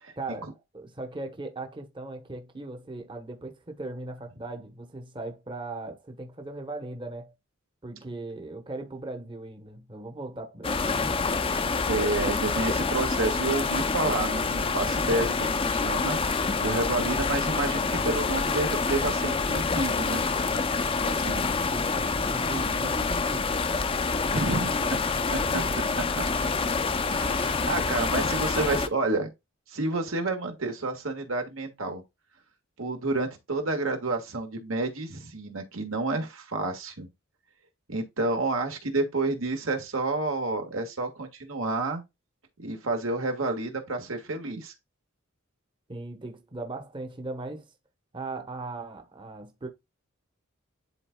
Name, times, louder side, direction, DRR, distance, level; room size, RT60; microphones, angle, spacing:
voice 1, 0.2-7.3 7.8-11.0 21.7-21.9 22.3-23.5 25.4-25.8 45.9-47.7 48.1-49.7, right 2 dB, 25° right, 1.0 m, -38 dB
sound 1, 10.6-28.9, left 4 dB, 25° left, 0.5 m, -27 dB
voice 2, 11.9-20.3 21.0-21.5 24.3-25.0 27.1-29.3 29.7-32.0 32.8-37.1 37.9-42.0 42.6-44.7, right 2 dB, 75° right, 1.7 m, -29 dB
11.0 x 3.9 x 2.3 m
head